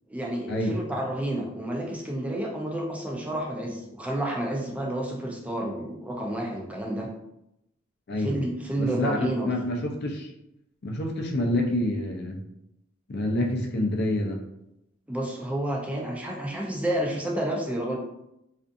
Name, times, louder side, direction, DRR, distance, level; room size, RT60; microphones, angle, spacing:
voice 1, 0.1-7.1 8.2-9.5 15.1-18.0, right 1 dB, 5° right, -1 dB, 0.4 m, -30 dB
voice 2, 8.1-8.4 8.8-10.3 10.8-12.4 13.1-14.4, left 1 dB, 55° left, 2 dB, 0.5 m, -27 dB
2.5 x 2.4 x 2.5 m, 0.85 s
head